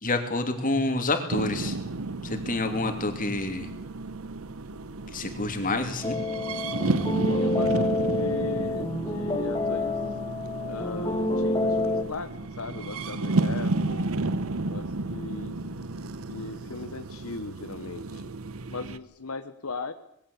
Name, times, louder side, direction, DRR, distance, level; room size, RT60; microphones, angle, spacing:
voice 1, 0.0-1.8 2.2-3.7 5.1-6.2, left 2 dB, 40° left, 6 dB, 3.0 m, -28 dB
sound 1, 1.3-19.0, right 2 dB, 75° right, 1.0 m, -32 dB
sound 2, 6.0-12.0, left 2 dB, 20° left, 2.5 m, -28 dB
voice 2, 7.2-10.1 10.6-12.3 12.6-14.1 14.7-15.5 16.1-18.2 18.7-19.9, left 3 dB, 85° left, 9 dB, 1.1 m, -38 dB
20.5 x 16.0 x 8.6 m, 0.78 s
head